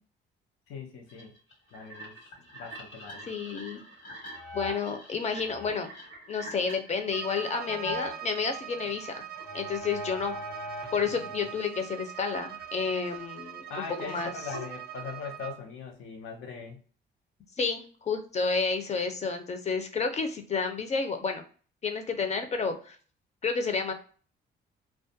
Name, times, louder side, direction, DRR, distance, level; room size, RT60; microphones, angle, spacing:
voice 1, 0.7-1.3 1.7-3.3 11.1-11.3 13.7-16.8, left 5 dB, 90° left, 3 dB, 0.6 m, -41 dB
sound 1, 1.1-8.2 8.7-11.6 11.8-15.4, equal, 70° left, 1.2 m, -42 dB
voice 2, 3.3-3.8 4.5-5.9 6.3-9.3 9.5-10.3 10.9-14.3 17.6-21.4 21.8-23.0 23.4-23.9, left 5 dB, 35° left, 6 dB, 0.5 m, -30 dB
Bowed string instrument, 7.0-15.6, right 11 dB, 50° right, 0.4 m, -43 dB
2.3 x 2.1 x 2.6 m, 0.41 s
cardioid pair, 90°, 20 cm